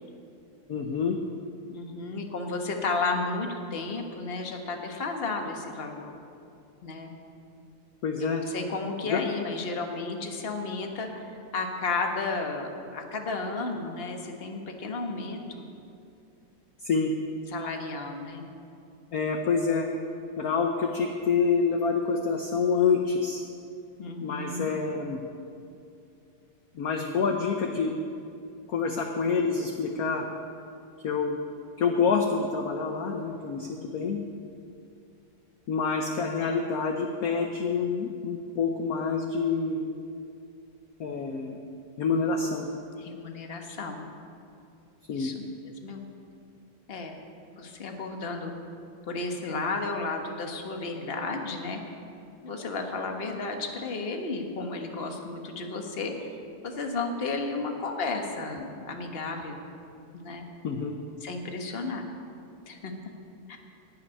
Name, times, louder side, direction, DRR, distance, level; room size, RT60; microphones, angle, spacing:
voice 1, 0.7-1.2 8.0-8.4 9.1-9.2 16.8-17.1 19.1-19.9 20.4-23.4 24.2-25.2 26.7-28.0 28.7-30.3 31.0-31.4 31.8-34.2 35.7-39.9 41.0-41.6 42.0-42.7 45.1-45.3 60.6-60.9, left 5 dB, 60° left, 3 dB, 1.0 m, -27 dB
voice 2, 1.7-6.1 6.8-7.1 8.2-15.6 17.5-18.4 24.0-24.7 43.0-44.1 45.1-45.4 45.8-46.1 46.9-47.2 47.6-48.5 49.1-51.8 52.4-56.3 56.6-59.6 60.1-60.4 61.2-62.1 62.7-62.9 63.5-63.6, left 3 dB, 35° left, 3 dB, 1.1 m, -33 dB
16.0 x 5.7 x 9.8 m, 2.6 s
omnidirectional pair, 2.4 m